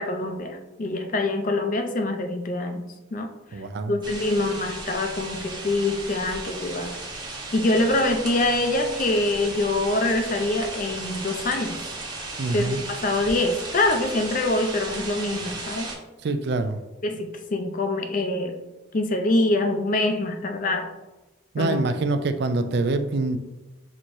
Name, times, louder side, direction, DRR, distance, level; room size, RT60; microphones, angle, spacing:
voice 1, 0.0-2.8 3.1-3.6 3.9-7.0 7.5-11.9 12.5-15.9 17.0-18.6 18.9-20.9 21.6-21.8, left 2 dB, 40° left, 5 dB, 0.4 m, -25 dB
voice 2, 3.5-4.0 12.4-12.8 16.2-16.8 21.5-23.4, right 3 dB, 55° right, 9 dB, 0.3 m, -25 dB
sound 1, 4.0-16.0, right 2 dB, 20° right, 0.8 m, -35 dB
6.0 x 2.9 x 2.6 m, 1.1 s
head